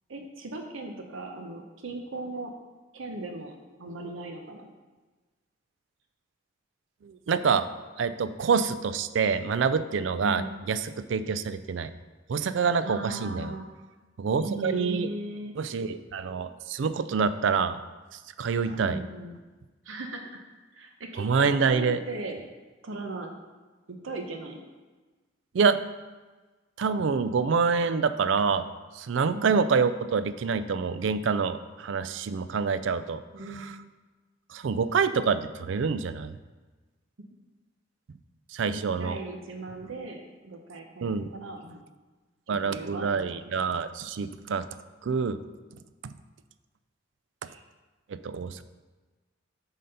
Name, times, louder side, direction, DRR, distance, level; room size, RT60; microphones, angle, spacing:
voice 1, 0.1-2.5 2.9-4.7 10.2-10.5 12.8-13.7 14.4-15.5 18.8-19.4 19.8-20.4 20.7-22.4 22.8-23.3 23.9-24.6 29.3-29.6 33.3-33.7 38.7-41.9 42.7-43.1 43.5-43.6 47.4-47.6, right 2 dB, 90° right, 4 dB, 0.8 m, -38 dB
voice 2, 7.0-7.7 8.0-11.9 12.3-13.6 14.2-15.1 15.6-17.8 18.4-19.0 21.2-22.0 25.5-25.8 26.8-28.6 28.9-33.2 33.5-33.7 34.5-36.3 38.5-39.2 41.0-41.3 42.5-44.7 45.0-45.4 46.0-46.1 48.1-48.6, right 5 dB, 70° right, 13 dB, 0.4 m, -26 dB
7.5 x 4.1 x 5.4 m, 1.3 s
head